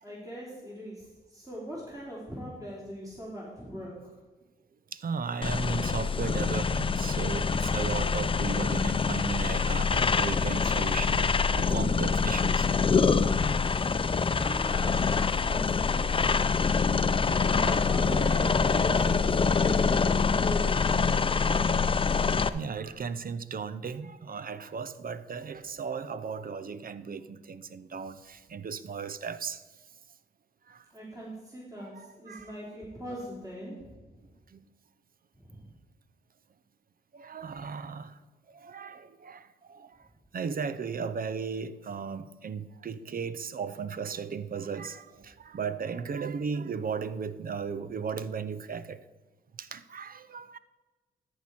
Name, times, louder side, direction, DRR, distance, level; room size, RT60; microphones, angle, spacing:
voice 1, 0.0-4.2 14.3-16.6 17.5-21.1 30.9-34.4 35.3-35.7, equal, 15° right, 3.1 m, -40 dB
voice 2, 4.9-11.3 11.6-12.7 21.2-29.6 30.7-30.8 32.0-32.5 34.5-34.6 37.1-38.1 38.5-39.9 40.3-49.0 49.6-50.6, right 6 dB, 45° right, 0.6 m, -36 dB
sound 1, 5.4-22.5, left 5 dB, 25° left, 0.5 m, -25 dB
13.5 x 4.7 x 4.3 m
supercardioid pair, 45°, 20 cm